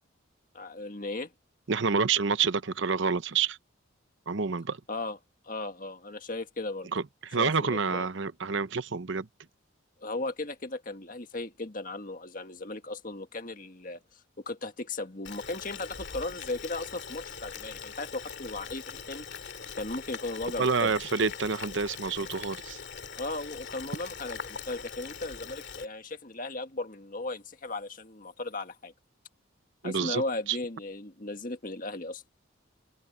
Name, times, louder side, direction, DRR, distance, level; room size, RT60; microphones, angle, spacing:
voice 1, 0.5-1.3 4.9-5.2 5.4-6.9 7.4-8.1 10.0-19.3 19.7-20.9 23.1-28.9 29.8-32.2, left 2 dB, 40° left, 1.8 m, -36 dB
voice 2, 1.7-3.6 4.3-4.8 6.9-9.3 20.6-22.8 29.8-30.2 30.5-30.6, right 5 dB, 60° right, 0.8 m, -28 dB
Boiling, 15.2-25.9, left 6 dB, 55° left, 2.4 m, -42 dB
head